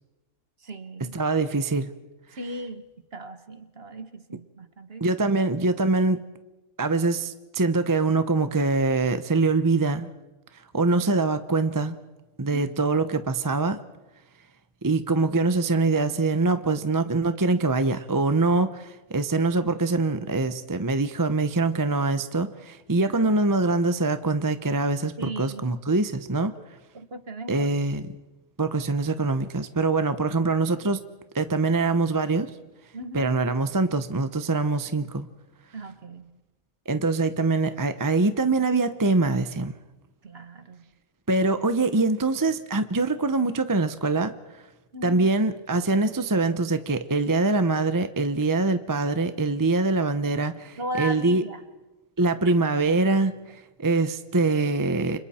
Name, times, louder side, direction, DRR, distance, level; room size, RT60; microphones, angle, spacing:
voice 1, 0.6-1.2 2.3-2.8 3.1-5.2 12.5-13.0 23.1-23.3 25.2-25.6 26.6-26.7 26.9-27.7 32.9-33.4 35.7-36.3 40.2-40.8 44.9-45.2 50.8-51.6, right 1 dB, 50° right, 9 dB, 1.6 m, -37 dB
voice 2, 1.1-1.9 5.0-6.2 6.8-10.1 10.7-12.0 12.4-13.8 14.8-26.5 27.5-28.0 28.6-31.0 31.3-32.5 33.1-35.3 36.9-39.7 41.3-44.3 45.0-51.4 52.2-55.2, right 3 dB, 20° right, 10 dB, 0.7 m, -24 dB
30.0 x 26.5 x 4.3 m, 1.1 s
omnidirectional pair, 1.4 m